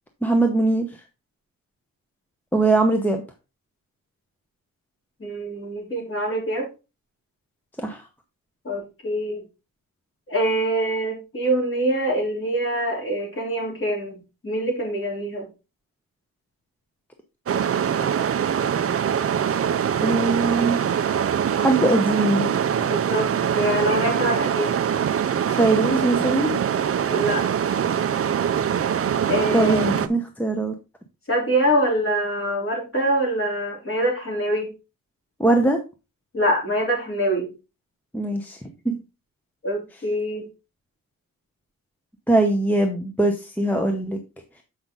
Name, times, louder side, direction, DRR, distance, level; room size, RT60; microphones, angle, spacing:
voice 1, 0.2-0.9 2.5-3.2 7.8-8.0 20.0-20.8 21.6-22.5 25.5-26.6 29.5-30.7 35.4-35.8 38.1-38.6 38.8-39.0 42.3-44.2, right 2 dB, 5° left, 4 dB, 0.8 m, -21 dB
voice 2, 5.2-6.7 8.7-9.4 10.3-15.5 22.8-23.3 23.5-24.9 27.1-27.4 29.3-29.9 31.3-34.7 36.3-37.5 39.6-40.4, right 1 dB, 40° left, -1 dB, 3.4 m, -24 dB
sound 1, 17.5-30.1, right 8 dB, 40° right, 0.5 m, -23 dB
7.3 x 5.8 x 3.8 m, 0.29 s
wide cardioid pair, 165°, 35 cm